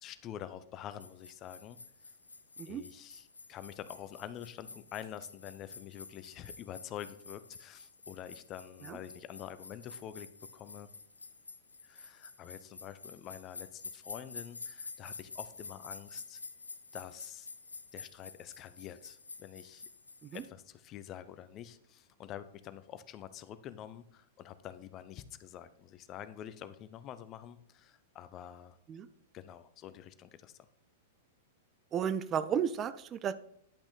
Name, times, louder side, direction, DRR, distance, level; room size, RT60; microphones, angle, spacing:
voice 1, 0.0-1.8 2.7-10.3 10.5-10.9 11.8-16.4 16.9-17.5 17.9-19.9 20.3-28.8 29.3-30.6, left 10 dB, 30° left, 13 dB, 0.7 m, -47 dB
sound 1, 1.0-20.5, left 3 dB, 80° left, 0.6 m, -50 dB
voice 2, 31.9-33.3, right 8 dB, 25° right, 13 dB, 0.5 m, -33 dB
10.5 x 5.8 x 4.1 m, 0.68 s
figure-of-eight pair, 100°, 0 cm